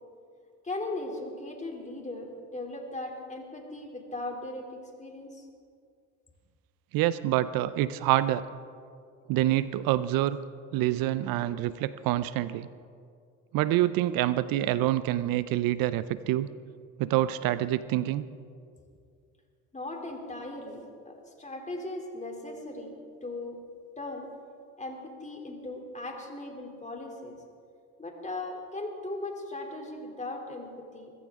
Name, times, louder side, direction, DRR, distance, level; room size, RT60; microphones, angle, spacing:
voice 1, 0.6-5.5 19.7-22.9 23.2-23.6 24.0-24.3 24.8-27.4 28.0-31.1, left 2 dB, 20° left, 2 dB, 3.1 m, -38 dB
voice 2, 6.9-8.4 9.3-10.4 10.7-12.7 13.5-16.5 17.0-18.3, right 14 dB, 75° right, 15 dB, 0.6 m, -26 dB
22.5 x 15.0 x 3.7 m, 2.3 s
supercardioid pair, 75°, 35 cm